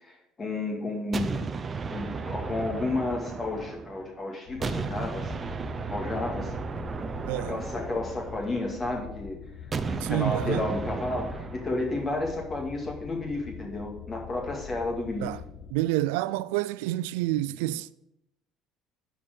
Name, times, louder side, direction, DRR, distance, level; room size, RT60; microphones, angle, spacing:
voice 1, 0.0-1.5 1.9-5.3 5.9-6.5 7.3-9.4 9.9-15.3, left 2 dB, 30° left, 2.1 m, -32 dB
sound 1, 1.1-4.1 4.6-8.9 9.7-11.8, right 5 dB, 30° right, 0.7 m, -34 dB
sound 2, 4.5-15.7, left 7 dB, 75° left, 0.8 m, -44 dB
voice 2, 7.3-7.6 10.0-10.7 15.2-15.4 15.7-17.9, right 16 dB, 90° right, 0.3 m, -28 dB
11.0 x 4.6 x 6.5 m
supercardioid pair, 95°, 0 cm